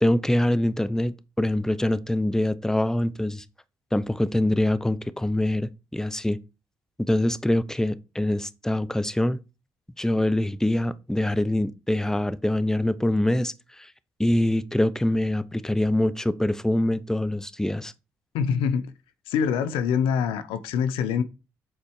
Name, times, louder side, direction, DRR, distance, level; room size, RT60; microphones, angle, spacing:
voice 1, 0.0-3.4 3.9-6.4 7.0-9.4 10.0-13.9 14.2-17.9, left 1 dB, 5° left, 0.7 m, -24 dB
voice 2, 18.3-18.9 19.3-21.2, left 7 dB, 75° left, 0.6 m, -24 dB
7.6 x 4.2 x 4.6 m
hypercardioid pair, 45°, 9 cm